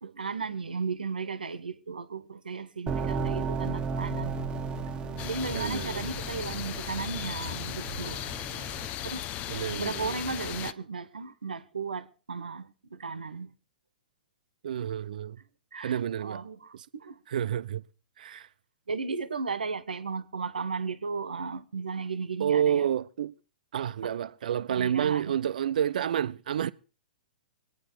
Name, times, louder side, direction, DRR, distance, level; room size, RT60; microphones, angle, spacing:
voice 1, 0.0-4.3 5.2-8.2 9.0-9.3 9.7-13.5 15.7-17.2 18.9-22.9 24.0-24.2 24.7-25.4, right 4 dB, 80° right, 1.1 m, -35 dB
sound 1, 2.9-8.9, right 5 dB, 20° right, 1.2 m, -35 dB
sound 2, 3.0-8.1, equal, 80° left, 3.4 m, -43 dB
sound 3, 5.2-10.7, left 12 dB, 30° left, 0.6 m, -37 dB
voice 2, 5.5-6.0 9.0-9.1 9.5-10.2 14.6-15.4 15.8-16.4 17.3-17.8 18.2-18.5 22.4-23.3 23.7-26.7, right 9 dB, 65° right, 0.7 m, -29 dB
24.5 x 9.3 x 4.3 m
figure-of-eight pair, 115°, 5 cm